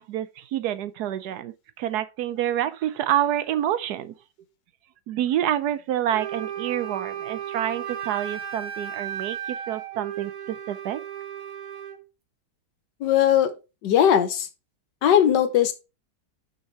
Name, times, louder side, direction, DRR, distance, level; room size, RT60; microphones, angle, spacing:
voice 1, 0.0-4.1 5.1-11.0, right 11 dB, 75° right, 1.1 m, -28 dB
Wind instrument woodwind instrument, 6.1-12.0, right 9 dB, 55° right, 1.4 m, -35 dB
voice 2, 13.0-13.5 13.8-14.5 15.0-15.7, left 10 dB, 85° left, 1.6 m, -19 dB
5.9 x 5.5 x 4.5 m
omnidirectional pair, 1.8 m